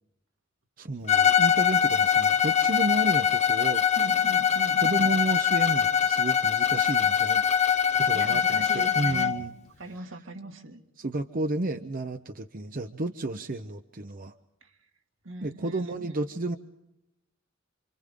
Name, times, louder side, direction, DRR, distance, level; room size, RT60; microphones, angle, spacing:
voice 1, 0.8-3.8 4.8-7.4 7.9-9.5 9.8-10.2 11.0-14.3 15.4-16.6, right 2 dB, 45° right, 8 dB, 0.8 m, -32 dB
Bowed string instrument, 1.1-9.4, left 8 dB, 35° left, 0.8 m, -23 dB
voice 2, 4.0-5.1 8.1-9.3 9.8-10.8 15.3-16.1 16.4-16.5, right 1 dB, 80° right, 3 dB, 2.2 m, -39 dB
28.5 x 25.5 x 3.7 m, 0.90 s
head